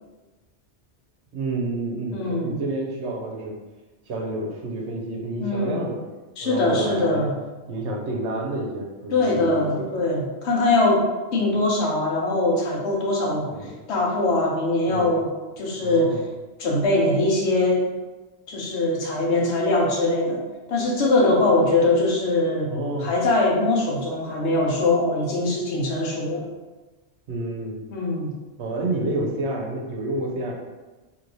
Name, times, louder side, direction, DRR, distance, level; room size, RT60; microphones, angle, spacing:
voice 1, 1.3-3.6 4.1-6.1 6.4-7.3 7.7-10.0 13.4-13.7 14.9-15.2 15.7-16.2 22.6-23.1 27.3-27.8 28.6-30.5, right 2 dB, 80° right, 0 dB, 0.9 m, -29 dB
voice 2, 2.1-2.6 5.4-5.8 6.4-7.3 9.1-11.0 11.3-13.5 13.9-15.3 15.6-16.2 16.6-17.9 18.5-20.4 20.7-22.7 23.0-26.4 27.9-28.3, left 2 dB, 75° left, -2 dB, 1.0 m, -22 dB
3.0 x 2.7 x 2.6 m, 1.2 s
omnidirectional pair, 1.2 m